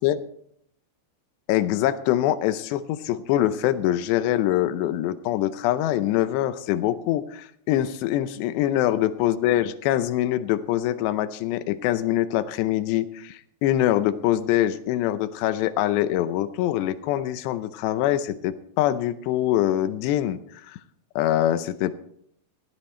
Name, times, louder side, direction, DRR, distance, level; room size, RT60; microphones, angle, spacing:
voice 1, 1.5-20.4 20.7-20.8 21.2-21.9, left 13 dB, 80° left, 13 dB, 2.8 m, -24 dB
16.0 x 11.0 x 4.3 m, 0.67 s
omnidirectional pair, 5.0 m